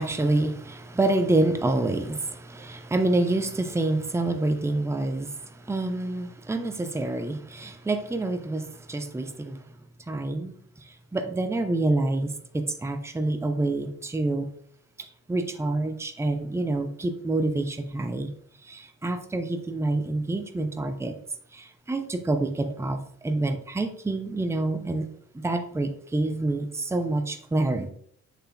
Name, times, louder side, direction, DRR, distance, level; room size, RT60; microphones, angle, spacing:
voice 1, 0.0-9.6 10.1-14.5 15.0-18.3 18.6-21.2 21.5-25.1 25.3-27.9, right 2 dB, 5° right, 0.7 m, -27 dB
7.9 x 6.6 x 2.3 m
figure-of-eight pair, 50°, 46 cm